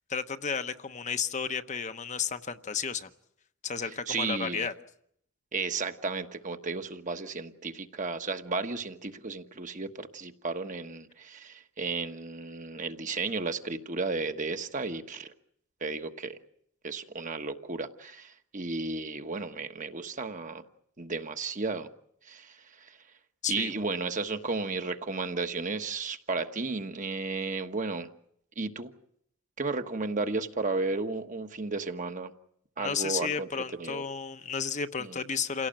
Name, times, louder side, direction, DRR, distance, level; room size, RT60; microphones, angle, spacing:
voice 1, 0.1-3.1 3.6-4.7 23.4-23.7 32.8-35.7, left 6 dB, 35° left, 9 dB, 0.9 m, -32 dB
voice 2, 4.1-4.7 5.5-15.3 15.8-16.4 16.8-20.6 21.0-21.9 22.2-23.0 23.5-28.1 28.6-28.9 29.6-32.3 32.8-34.0 35.0-35.2, right 3 dB, 40° right, 7 dB, 1.3 m, -33 dB
28.5 x 17.5 x 8.9 m, 0.72 s
head